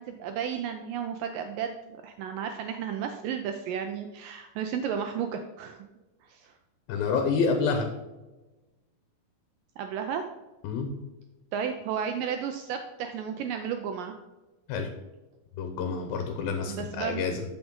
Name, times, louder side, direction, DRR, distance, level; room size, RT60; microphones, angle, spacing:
voice 1, 0.0-5.9 6.3-6.5 9.8-10.2 11.5-14.1 16.6-17.2, right 8 dB, 80° right, 5 dB, 2.2 m, -33 dB
voice 2, 6.9-7.9 10.6-10.9 14.7-14.9 15.6-17.4, left 5 dB, 80° left, 6 dB, 2.7 m, -28 dB
13.0 x 6.2 x 3.8 m, 1.1 s
omnidirectional pair, 4.3 m